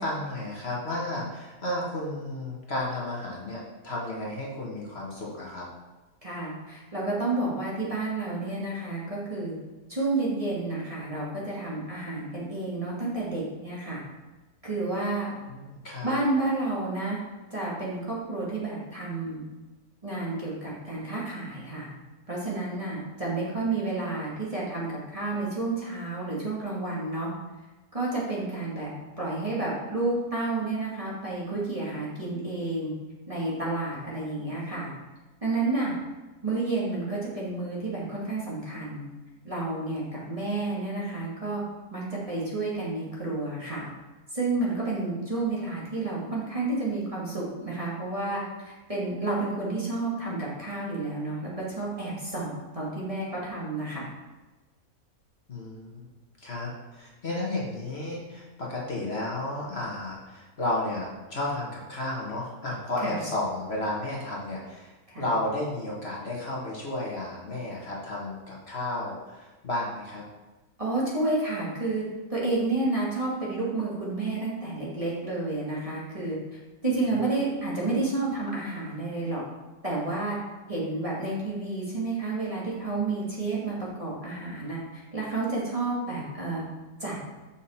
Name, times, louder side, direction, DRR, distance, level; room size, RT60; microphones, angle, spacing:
voice 1, 0.0-5.7 15.2-16.1 55.5-56.0 56.4-70.2, left 1 dB, 45° left, -4 dB, 1.6 m, -33 dB
voice 2, 6.2-9.5 9.9-14.0 14.6-15.3 16.0-17.2 17.5-19.4 20.0-21.9 22.3-27.3 27.9-28.9 29.2-32.9 33.3-34.9 35.4-35.9 36.4-39.1 39.4-41.6 41.9-43.9 44.3-54.1 63.0-63.2 65.1-65.2 70.8-72.0 72.3-76.4 76.8-79.4 79.8-80.4 80.7-86.6 87.0-87.2, right 2 dB, 25° right, -6 dB, 1.7 m, -30 dB
7.1 x 5.8 x 4.2 m, 1.2 s
omnidirectional pair, 1.6 m